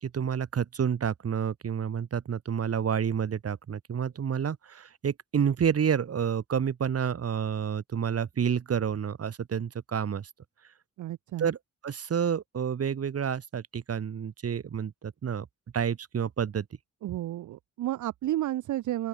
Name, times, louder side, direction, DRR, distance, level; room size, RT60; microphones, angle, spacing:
voice 1, 0.0-10.3 11.4-11.6 11.8-15.5 15.7-16.6, right 7 dB, 50° right, 1.2 m, -29 dB
voice 2, 11.0-11.5 17.0-19.1, right 14 dB, 75° right, 0.5 m, -31 dB
open air
cardioid pair, 85°, 31 cm